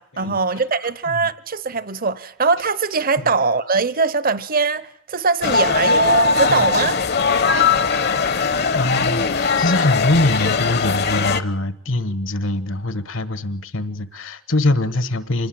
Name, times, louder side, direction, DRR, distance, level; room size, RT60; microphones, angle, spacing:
voice 1, 0.0-7.0, right 4 dB, 45° right, 0.9 m, -21 dB
sound 1, 5.4-11.4, left 4 dB, 50° left, 1.0 m, -19 dB
voice 2, 8.7-15.5, left 1 dB, 70° left, 1.3 m, -23 dB
26.0 x 20.5 x 7.7 m
head